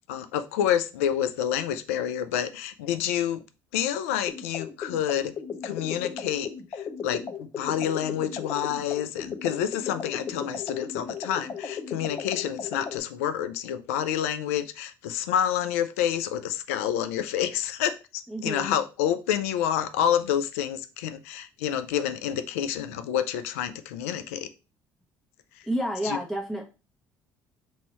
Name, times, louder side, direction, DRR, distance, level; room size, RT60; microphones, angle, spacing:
voice 1, 0.1-3.4 3.7-5.3 5.6-24.5 26.0-26.2, left 10 dB, 90° left, 0.4 m, -28 dB
sound 1, 4.3-13.0, left 6 dB, 45° left, 0.7 m, -36 dB
voice 2, 18.3-18.8 25.7-26.6, equal, 5° left, 1.0 m, -30 dB
3.0 x 2.7 x 4.1 m
hypercardioid pair, 65°, 7 cm